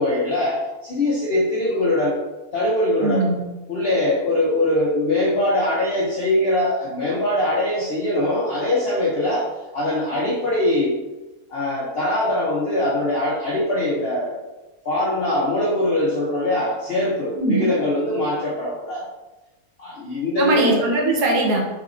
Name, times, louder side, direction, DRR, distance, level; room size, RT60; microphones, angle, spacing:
voice 1, 0.0-2.2 2.5-3.3 3.7-9.4 9.7-11.0 11.5-14.4 14.8-19.0 19.8-20.8, left 1 dB, 50° left, -5 dB, 0.7 m, -22 dB
voice 2, 3.0-3.4 17.4-17.7 20.4-21.6, right 2 dB, 75° right, -1 dB, 1.4 m, -20 dB
4.0 x 3.9 x 2.5 m, 1.1 s
omnidirectional pair, 1.7 m